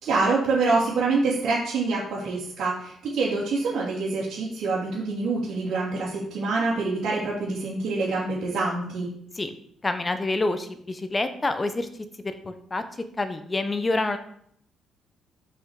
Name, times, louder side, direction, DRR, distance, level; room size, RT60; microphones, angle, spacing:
voice 1, 0.0-9.1, right 3 dB, 65° right, -9 dB, 2.9 m, -26 dB
voice 2, 9.8-11.9 12.2-12.8 13.2-14.2, left 2 dB, 25° left, 9 dB, 1.0 m, -27 dB
6.3 x 5.7 x 5.0 m, 0.67 s
cardioid pair, 80°, 0 cm